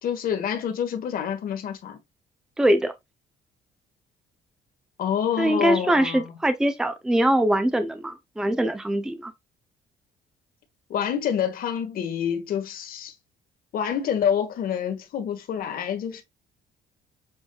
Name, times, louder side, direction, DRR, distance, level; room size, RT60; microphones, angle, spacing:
voice 1, 0.0-2.0 5.0-6.2 10.9-13.1 13.7-16.2, left 8 dB, 60° left, 1.2 m, -27 dB
voice 2, 2.6-2.9 5.4-9.3, right 1 dB, 5° right, 0.5 m, -22 dB
7.1 x 2.6 x 2.3 m
cardioid pair, 110°, 17 cm